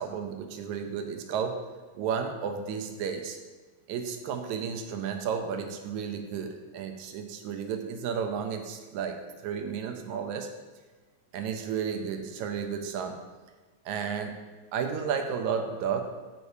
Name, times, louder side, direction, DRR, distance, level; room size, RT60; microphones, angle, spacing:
voice 1, 0.0-1.6 2.0-3.4 3.9-10.5 11.3-13.2 13.9-14.4 14.7-16.1, right 7 dB, 80° right, 5 dB, 2.0 m, -32 dB
13.5 x 4.7 x 2.7 m, 1.3 s
omnidirectional pair, 3.4 m